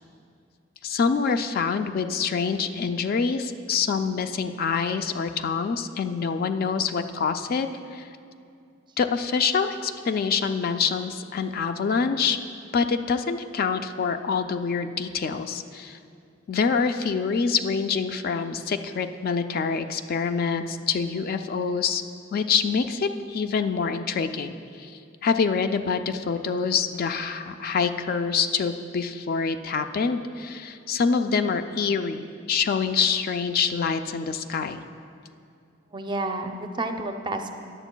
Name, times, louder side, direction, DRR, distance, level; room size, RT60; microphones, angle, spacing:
voice 1, 0.8-8.1 9.0-12.4 12.7-16.0 16.5-22.0 22.3-34.8, left 5 dB, 50° left, 8 dB, 0.3 m, -26 dB
voice 2, 35.9-37.5, right 2 dB, 25° right, 6 dB, 0.5 m, -30 dB
14.0 x 9.8 x 2.2 m, 2.4 s
head